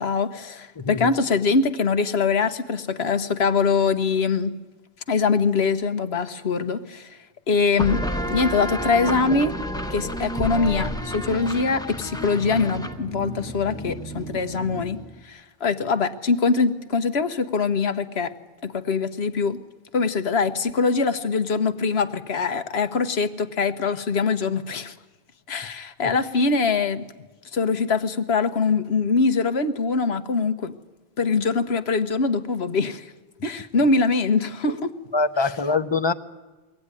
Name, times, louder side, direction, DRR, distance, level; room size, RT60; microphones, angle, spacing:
voice 1, 0.0-4.5 5.1-7.2 7.5-9.5 9.9-18.3 18.6-19.6 19.9-24.9 25.5-27.0 27.5-30.7 31.2-33.1 33.4-34.9, left 4 dB, 90° left, 10 dB, 1.3 m, -23 dB
voice 2, 0.8-1.1 25.6-25.7 26.0-26.1 34.7-34.8 35.1-36.1, left 3 dB, 30° left, 11 dB, 0.8 m, -24 dB
sound 1, 7.8-15.1, equal, 5° left, 1.0 m, -30 dB
23.0 x 17.5 x 9.7 m, 1.2 s
omnidirectional pair, 1.0 m